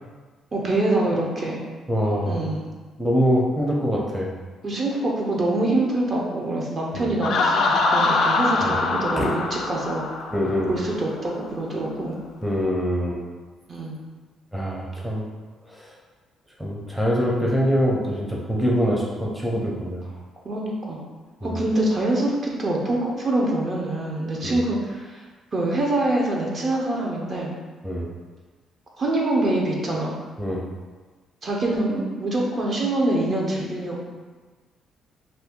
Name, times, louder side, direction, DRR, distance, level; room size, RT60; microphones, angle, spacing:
voice 1, 0.5-1.6 2.3-2.7 4.6-10.1 10.7-12.2 13.7-14.0 20.4-21.0 21.4-25.2 25.5-27.5 29.0-30.1 31.4-34.0, right 2 dB, 40° right, -2 dB, 0.7 m, -25 dB
voice 2, 1.9-2.4 3.0-4.3 6.9-7.1 8.6-8.8 9.2-9.3 10.3-10.7 12.4-13.2 14.5-15.3 15.7-15.9 16.6-20.0 21.4-21.6 24.4-24.6 27.8-28.1 30.4-30.6, equal, ahead, -3 dB, 0.6 m, -24 dB
Laughter, 7.2-10.9, left 3 dB, 70° left, 0.3 m, -23 dB
2.6 x 2.6 x 3.6 m, 1.3 s
cardioid pair, 95°, 0 cm